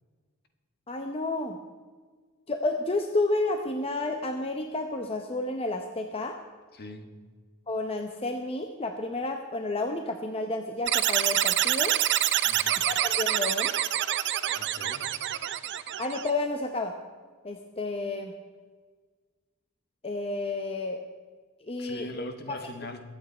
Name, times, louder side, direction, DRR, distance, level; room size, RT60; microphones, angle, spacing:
voice 1, 0.9-1.6 2.5-6.3 7.7-11.9 12.9-13.7 16.0-16.9 17.4-18.3 20.0-21.0 21.6-22.6, left 2 dB, 25° left, 4 dB, 0.9 m, -31 dB
voice 2, 6.7-7.1 12.4-12.7 14.5-15.1 21.8-23.0, left 1 dB, 50° left, 6 dB, 1.4 m, -41 dB
sound 1, 10.9-16.3, right 12 dB, 55° right, 0.5 m, -26 dB
22.0 x 8.6 x 4.4 m, 1.5 s
head